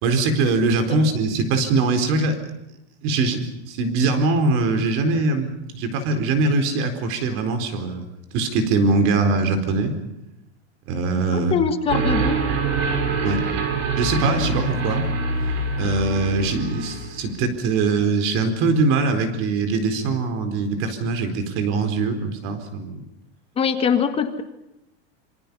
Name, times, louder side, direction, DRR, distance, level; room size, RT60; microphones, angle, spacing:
voice 1, 0.0-2.4 3.0-8.1 8.3-10.0 10.9-11.6 13.2-13.5 14.0-15.1 15.8-23.0, right 3 dB, 40° right, 8 dB, 4.3 m, -22 dB
voice 2, 11.3-12.4 23.6-24.4, left 6 dB, 15° left, 7 dB, 1.6 m, -22 dB
sound 1, 11.9-17.2, right 3 dB, 75° right, 7.6 m, -24 dB
26.5 x 25.5 x 5.5 m, 0.88 s
supercardioid pair, 165°, 32 cm